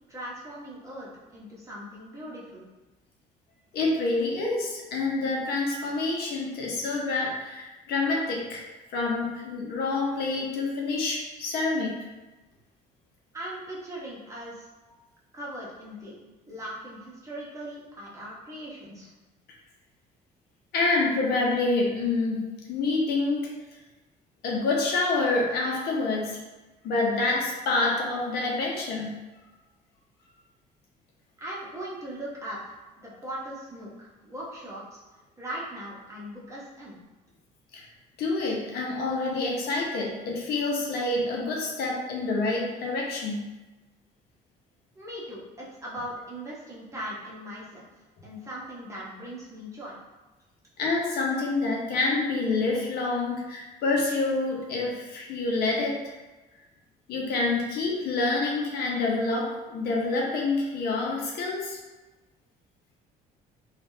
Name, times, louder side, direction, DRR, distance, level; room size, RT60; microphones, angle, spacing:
voice 1, 0.1-2.6 13.3-14.7 15.3-16.2 16.5-19.1 31.4-35.0 35.4-37.0 44.9-47.8 48.2-49.9, right 1 dB, 15° right, -6 dB, 0.9 m, -39 dB
voice 2, 3.7-11.9 20.7-23.5 24.4-26.4 26.8-29.1 37.7-37.8 38.2-43.4 50.8-56.1 57.1-61.8, left 3 dB, 70° left, -2 dB, 0.7 m, -27 dB
3.2 x 2.4 x 2.7 m, 1.1 s
cardioid pair, 110°, 17 cm